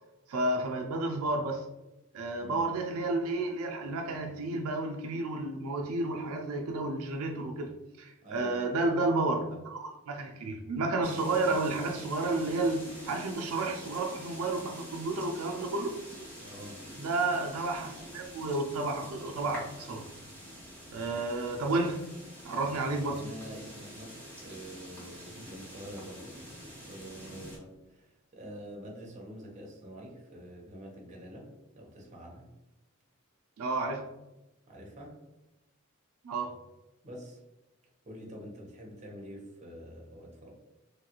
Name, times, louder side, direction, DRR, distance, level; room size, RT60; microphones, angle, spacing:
voice 1, 0.3-1.6 2.1-7.7 8.0-16.0 16.9-20.1 20.9-22.0 22.4-23.2 33.6-34.0 36.2-36.6, right 2 dB, 80° right, 3 dB, 0.4 m, -31 dB
voice 2, 8.2-9.0 16.4-16.8 23.1-26.4 26.8-31.5 31.7-32.5 34.7-35.2 37.0-37.4 38.1-40.5, equal, 35° right, -1 dB, 0.7 m, -46 dB
sound 1, 11.0-27.6, equal, 5° left, 1.0 m, -47 dB
3.1 x 2.3 x 2.8 m, 0.99 s
head